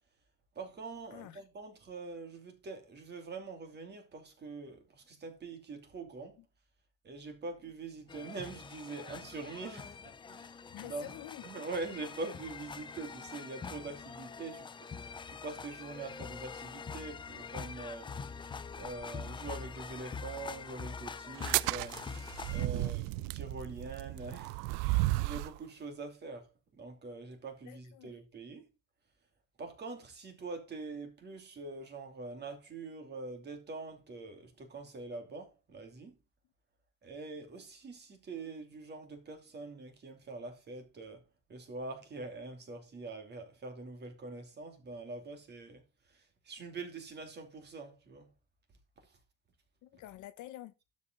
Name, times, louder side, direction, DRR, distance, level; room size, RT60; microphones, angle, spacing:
voice 1, 0.5-6.4 7.0-11.1 11.4-14.9 15.3-18.1 18.8-22.0 22.5-24.6 25.2-28.7 29.6-36.2 37.0-48.3 49.0-49.2, right 3 dB, 25° right, 2.8 m, -44 dB
sound 1, 8.1-22.7, left 5 dB, 15° left, 0.4 m, -44 dB
voice 2, 10.7-11.4 22.7-22.9 25.0-25.3 27.6-28.2 49.8-50.7, left 14 dB, 50° left, 1.0 m, -48 dB
sound 2, 21.4-25.6, right 21 dB, 80° right, 0.5 m, -33 dB
12.0 x 5.3 x 3.9 m
cardioid pair, 160°, 37 cm